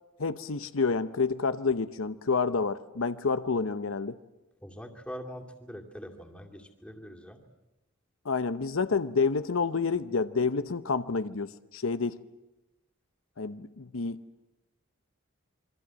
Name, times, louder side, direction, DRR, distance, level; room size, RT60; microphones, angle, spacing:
voice 1, 0.2-4.2 8.2-12.2 13.4-14.2, left 4 dB, 85° left, 13 dB, 0.8 m, -29 dB
voice 2, 4.6-7.4, equal, 5° left, 2 dB, 2.5 m, -43 dB
27.0 x 23.0 x 7.5 m, 1.0 s
head